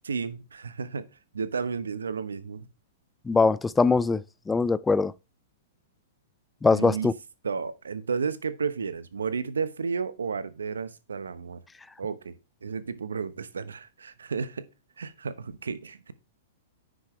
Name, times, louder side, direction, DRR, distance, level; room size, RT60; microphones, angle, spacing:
voice 1, 0.0-1.1 1.3-2.7 6.7-7.1 7.4-11.6 12.0-14.7 15.0-16.1, right 5 dB, 90° right, 0.9 m, -32 dB
voice 2, 3.3-5.1 6.6-7.1, left 4 dB, 10° left, 0.4 m, -22 dB
9.7 x 6.3 x 3.2 m
hypercardioid pair, 120°, 0 cm